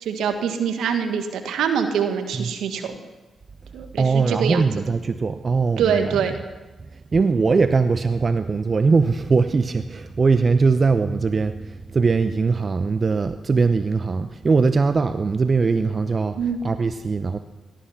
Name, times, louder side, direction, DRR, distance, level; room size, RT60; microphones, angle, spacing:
voice 1, 0.0-2.9 3.7-4.7 5.8-6.3 16.4-16.6, right 7 dB, 75° right, 6 dB, 1.6 m, -24 dB
voice 2, 4.0-6.2 7.1-16.4 16.6-17.4, right 4 dB, 45° right, 10 dB, 0.7 m, -21 dB
18.0 x 12.5 x 5.9 m, 1.2 s
hypercardioid pair, 40°, 0 cm